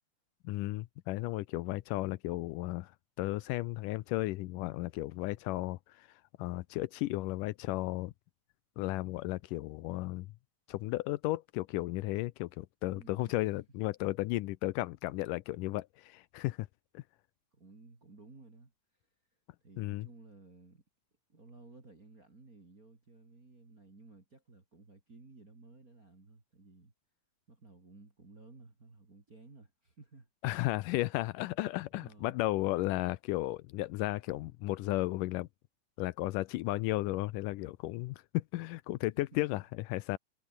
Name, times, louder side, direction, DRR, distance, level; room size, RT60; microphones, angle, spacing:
voice 1, 0.4-2.9 3.2-6.1 6.4-8.1 8.8-10.3 10.7-16.7 16.9-17.0 19.8-20.1 30.4-35.5 36.0-39.6 39.9-40.2, left 18 dB, 85° left, 2.2 m, -34 dB
voice 2, 12.8-13.3 17.5-18.7 19.6-20.8 21.3-26.9 27.5-30.3 31.9-32.4 39.2-39.4, right 3 dB, 25° right, 3.8 m, -56 dB
omnidirectional pair, 3.8 m